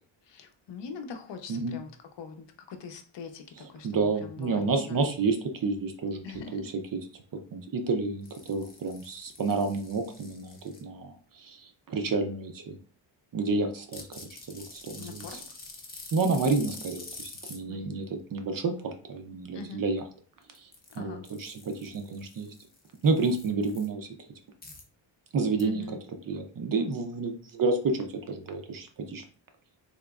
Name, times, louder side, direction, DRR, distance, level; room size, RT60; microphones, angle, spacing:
voice 1, 0.2-5.1 6.2-6.7 15.0-15.4 17.7-18.0 19.5-19.8 20.9-21.2 25.6-26.0, left 5 dB, 60° left, 6 dB, 0.6 m, -43 dB
voice 2, 3.8-5.4 5.6-6.2 6.5-6.6 6.9-7.0 7.5-12.7 13.3-14.2 14.5-15.2 16.1-20.0 20.6-20.7 21.0-22.5 23.0-24.1 25.3-25.8 26.3-29.2, right 3 dB, 45° right, 6 dB, 0.5 m, -30 dB
sound 1, 8.2-10.8 13.9-17.6 20.4-21.0 21.2-23.9 24.6-24.8 25.6-25.7, left 3 dB, 20° left, 0.6 m, -46 dB
3.6 x 2.9 x 2.3 m, 0.42 s
wide cardioid pair, 165°, 48 cm